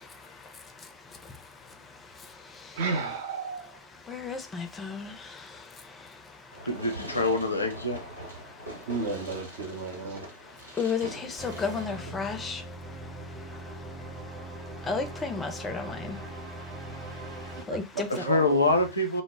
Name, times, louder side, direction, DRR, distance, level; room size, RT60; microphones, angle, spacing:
voice 1, 2.7-3.8 8.9-10.2 17.7-18.6, right 4 dB, 55° right, 0.6 m, -33 dB
voice 2, 4.1-5.1 10.8-12.6 14.9-16.2 17.7-18.1, left 5 dB, 15° left, 0.4 m, -32 dB
Fireworks, 6.5-12.5, right 1 dB, 80° right, 0.8 m, -43 dB
voice 3, 6.6-8.0 11.0-11.2 18.2-19.2, left 2 dB, 80° left, 0.5 m, -25 dB
sound 1, 11.4-17.6, right 1 dB, 30° right, 0.9 m, -41 dB
2.0 x 2.0 x 3.4 m
figure-of-eight pair, 90°, 0 cm